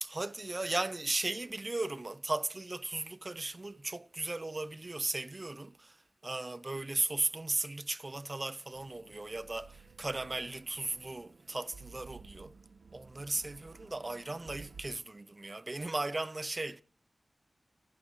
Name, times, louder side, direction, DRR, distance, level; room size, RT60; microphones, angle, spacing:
voice 1, 0.0-6.0 6.2-12.5 12.9-16.8, right 2 dB, 35° right, 0.8 m, -36 dB
sound 1, 8.7-14.8, right 5 dB, 85° right, 1.2 m, -55 dB
29.5 x 15.5 x 3.0 m
wide cardioid pair, 65°, 0 cm